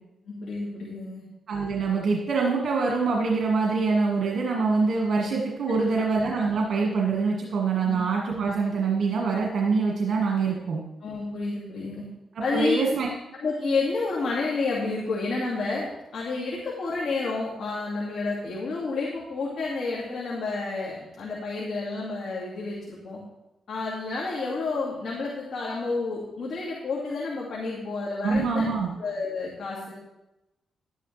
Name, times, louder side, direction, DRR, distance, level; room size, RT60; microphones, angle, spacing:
voice 1, 0.3-1.2 5.7-5.9 7.8-8.0 11.0-12.0 12.4-12.8 13.4-23.2 23.7-28.6 29.0-29.9, left 3 dB, 65° left, -4 dB, 2.2 m, -30 dB
voice 2, 1.5-10.8 12.5-13.1 28.2-28.9, right 4 dB, 65° right, -1 dB, 1.6 m, -25 dB
11.5 x 10.0 x 3.3 m, 0.95 s
cardioid pair, 75°, 0 cm